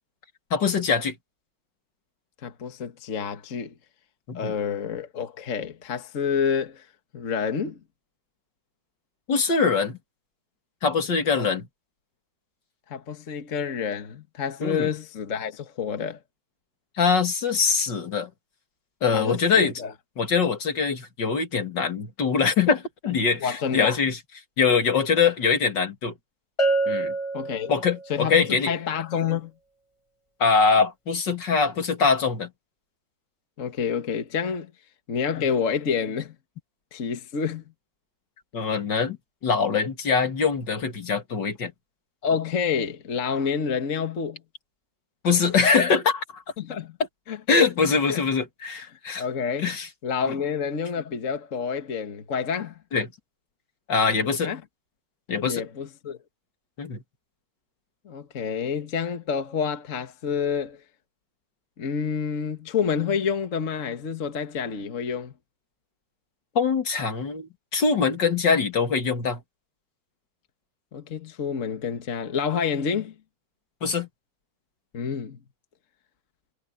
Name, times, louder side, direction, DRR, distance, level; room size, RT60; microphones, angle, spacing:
voice 1, 0.5-1.1 4.3-4.5 9.3-10.0 10.8-11.6 14.6-14.9 17.0-18.3 19.0-19.7 20.2-24.2 24.6-26.1 26.9-27.1 27.7-28.7 30.4-32.5 38.5-39.2 39.4-41.7 45.2-46.4 47.5-49.2 49.6-49.9 50.3-50.4 52.9-53.1 53.9-54.5 55.3-55.6 56.8-57.0 66.5-69.4 73.8-74.1, left 5 dB, 65° left, 2.8 m, -23 dB
voice 2, 2.4-3.7 4.3-6.9 7.1-7.8 11.3-11.5 12.9-16.2 19.1-19.9 23.4-24.0 27.3-27.7 28.1-29.5 33.6-34.7 35.1-36.3 36.9-37.6 42.2-44.4 46.6-47.0 47.3-47.4 48.1-48.2 48.9-49.8 50.0-52.8 54.4-54.6 55.4-56.2 58.0-60.8 61.8-65.3 70.9-73.1 74.9-75.4, left 6 dB, 45° left, 1.6 m, -28 dB
Bell, 26.6-28.2, right 2 dB, 25° left, 0.7 m, -26 dB
omnidirectional pair, 2.1 m